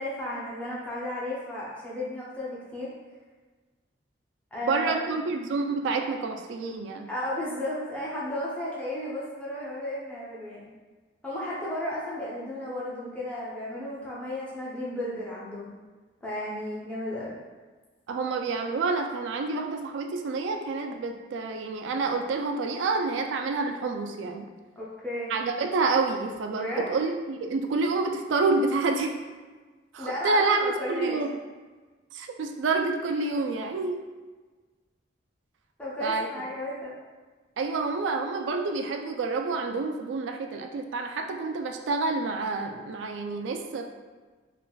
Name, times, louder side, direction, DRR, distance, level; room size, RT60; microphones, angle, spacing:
voice 1, 0.0-2.9 4.5-5.1 7.1-10.7 11.2-15.7 16.2-17.4 24.8-25.4 26.5-26.9 30.0-31.2 35.8-36.9, left 1 dB, 10° left, -8 dB, 0.6 m, -34 dB
voice 2, 4.7-7.1 18.1-24.5 25.3-29.1 29.9-31.3 32.1-34.0 36.0-36.3 37.6-43.8, right 3 dB, 85° right, 4 dB, 0.3 m, -28 dB
3.3 x 2.5 x 2.2 m, 1.4 s
head